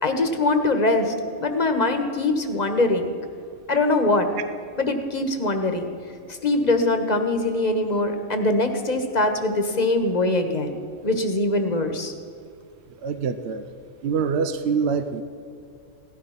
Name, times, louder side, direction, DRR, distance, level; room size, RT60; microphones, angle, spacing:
voice 1, 0.0-3.1 3.7-4.3 4.8-5.9 6.3-10.7 11.0-12.1, left 2 dB, 35° left, 6 dB, 1.4 m, -22 dB
voice 2, 13.0-13.6 14.0-15.2, right 6 dB, 60° right, 10 dB, 0.9 m, -25 dB
16.5 x 12.5 x 5.8 m, 2.4 s
omnidirectional pair, 1.3 m